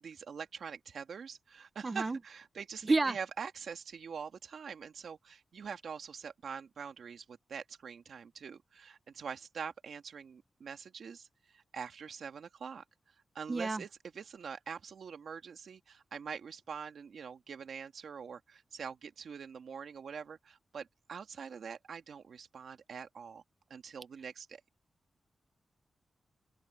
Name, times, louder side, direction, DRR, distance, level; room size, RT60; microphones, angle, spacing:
voice 1, 0.0-12.8 13.3-23.4 23.7-24.6, right 6 dB, 70° right, 2.1 m, -44 dB
voice 2, 1.8-2.2 2.8-3.2 13.5-13.8, right 3 dB, 25° right, 0.6 m, -29 dB
open air
wide cardioid pair, 160°, 0 cm